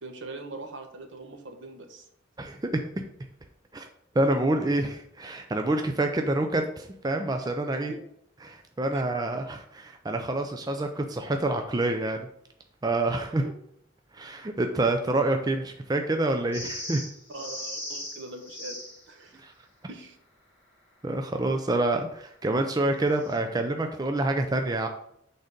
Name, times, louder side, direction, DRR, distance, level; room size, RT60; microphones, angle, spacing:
voice 1, 0.0-2.1 7.9-8.0 8.9-9.0 13.4-13.5 17.3-18.8 19.1-19.4 19.9-20.2, right 2 dB, 65° right, 5 dB, 1.1 m, -41 dB
voice 2, 4.2-7.9 8.4-12.3 12.8-13.4 14.1-17.0 19.4-19.5 21.0-24.9, right 2 dB, 20° right, 5 dB, 0.4 m, -27 dB
sound 1, 16.5-19.0 23.1-23.4, left 1 dB, 10° left, 2.8 m, -38 dB
6.3 x 3.9 x 5.2 m, 0.70 s
head